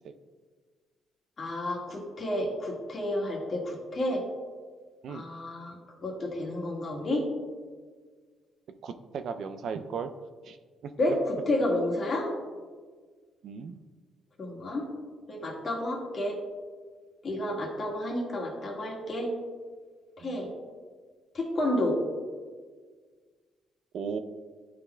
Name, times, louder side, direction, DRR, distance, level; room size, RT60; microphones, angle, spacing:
voice 1, 1.4-4.2 5.1-7.2 11.0-11.2 11.5-12.3 14.4-14.9 15.3-16.4 17.2-19.3 20.2-20.5 21.3-22.0, left 1 dB, 45° left, -2 dB, 1.7 m, -30 dB
voice 2, 8.8-10.1 10.4-10.6 10.8-10.9 13.4-13.8 17.3-17.5 20.2-20.5 23.9-24.2, right 6 dB, 70° right, 9 dB, 0.4 m, -36 dB
11.0 x 4.0 x 2.2 m, 1.5 s
cardioid pair, 90°, 0 cm